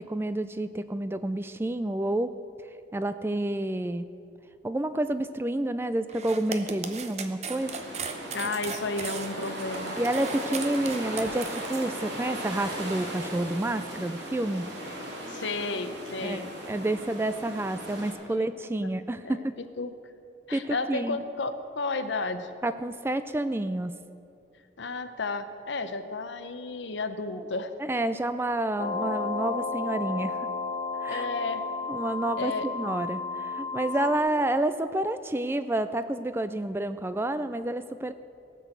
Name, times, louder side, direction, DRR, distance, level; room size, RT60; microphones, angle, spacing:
voice 1, 0.0-2.4 2.9-4.1 4.6-7.8 10.0-14.7 16.2-19.5 20.5-21.2 22.6-23.9 27.8-30.5 31.0-31.3 31.9-38.1, right 1 dB, 10° right, 12 dB, 0.3 m, -29 dB
sound 1, 6.1-11.9, right 6 dB, 35° right, 0.8 m, -37 dB
sound 2, 7.5-18.1, equal, 70° right, 2.7 m, -37 dB
voice 2, 8.3-10.0 15.3-16.5 18.3-18.5 19.2-19.4 19.8-19.9 20.5-22.5 24.8-27.7 31.1-31.6 32.4-32.7, left 3 dB, 75° left, 10 dB, 0.8 m, -32 dB
sound 3, 28.8-34.2, left 4 dB, 35° left, 1.1 m, -32 dB
17.5 x 6.2 x 7.9 m, 2.5 s
head